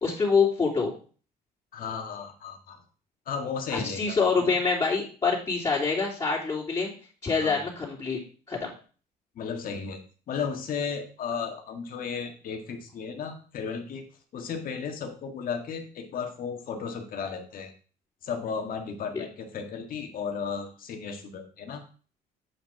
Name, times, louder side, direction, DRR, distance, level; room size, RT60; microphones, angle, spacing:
voice 1, 0.0-0.9 3.7-6.9 7.2-8.2 8.5-8.7 19.1-19.2, left 4 dB, 25° left, -8 dB, 3.3 m, -25 dB
voice 2, 1.7-2.8 3.3-4.6 7.4-7.6 9.4-10.0 10.3-14.0 14.3-17.7 18.2-21.8, left 6 dB, 55° left, 4 dB, 1.8 m, -34 dB
8.5 x 5.2 x 4.8 m, 0.40 s
cardioid pair, 110°, 17 cm